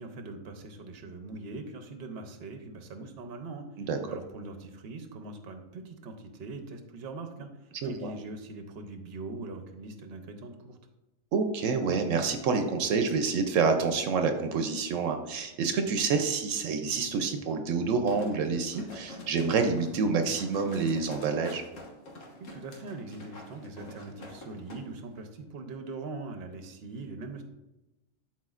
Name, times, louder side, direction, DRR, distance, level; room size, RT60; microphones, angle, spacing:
voice 1, 0.0-10.8 22.4-27.4, right 3 dB, 55° right, 6 dB, 0.9 m, -42 dB
voice 2, 7.8-8.1 11.3-21.6, right 5 dB, 80° right, 6 dB, 1.0 m, -28 dB
sound 1, 18.1-24.8 25.2-25.3, left 1 dB, 80° left, 1.6 m, -47 dB
11.5 x 4.4 x 2.4 m, 0.99 s
omnidirectional pair, 1.3 m